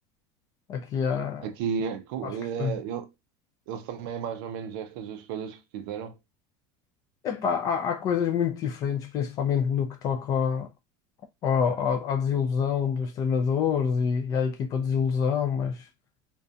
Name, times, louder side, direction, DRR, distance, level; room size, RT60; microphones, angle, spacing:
voice 1, 0.7-1.5 2.2-2.3 2.6-2.7 7.2-10.7 11.4-15.8, left 7 dB, 25° left, 0.3 m, -26 dB
voice 2, 1.4-3.1 3.7-6.2, right 7 dB, 55° right, 0.4 m, -33 dB
2.4 x 2.2 x 2.5 m
cardioid pair, 175°, 14 cm